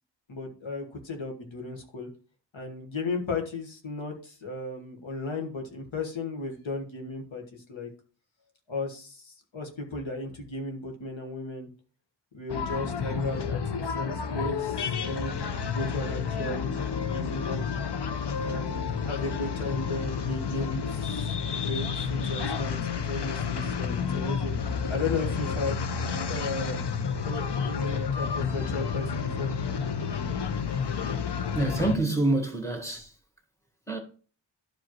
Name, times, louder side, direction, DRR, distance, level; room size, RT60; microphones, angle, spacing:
voice 1, 0.3-2.1 2.5-7.9 8.7-11.7 12.3-17.7 18.4-25.8 26.3-26.8 27.2-29.5 29.9-30.0, left 3 dB, 90° left, 1.5 m, -35 dB
sound 1, 12.5-32.0, left 6 dB, 60° left, 0.7 m, -30 dB
voice 2, 31.5-33.2 33.9-34.0, right 2 dB, 5° left, 1.6 m, -26 dB
11.0 x 4.8 x 3.1 m
wide cardioid pair, 90°, 45 cm